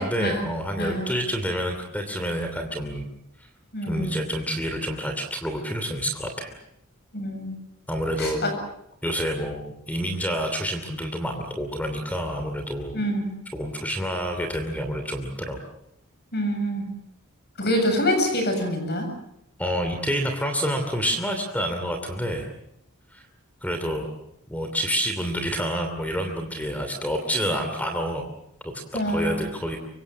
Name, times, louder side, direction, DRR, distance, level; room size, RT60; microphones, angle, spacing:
voice 1, 0.0-3.1 3.8-6.5 7.9-8.4 9.0-13.0 13.5-15.6 19.6-22.5 23.1-23.2 23.6-24.1 24.5-28.2 28.6-28.7 29.0-29.8, equal, 5° left, 5 dB, 2.8 m, -28 dB
voice 2, 0.8-1.1 3.7-4.1 7.1-7.5 8.2-8.5 12.9-13.3 16.3-16.9 17.6-19.1 28.9-29.4, equal, 50° left, 5 dB, 7.8 m, -25 dB
25.5 x 23.5 x 7.3 m, 0.79 s
head